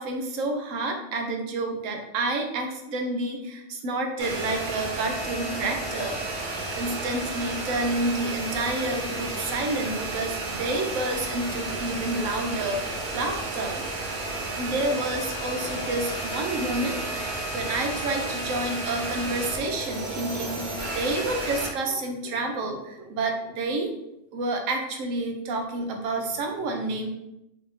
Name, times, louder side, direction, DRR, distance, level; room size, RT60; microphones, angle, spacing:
voice 1, 0.0-13.8 14.5-23.9 24.3-27.1, right 2 dB, 90° right, 3 dB, 1.0 m, -29 dB
sound 1, 4.2-21.7, right 2 dB, 45° right, 0.8 m, -32 dB
3.9 x 2.5 x 2.9 m, 0.85 s
omnidirectional pair, 1.3 m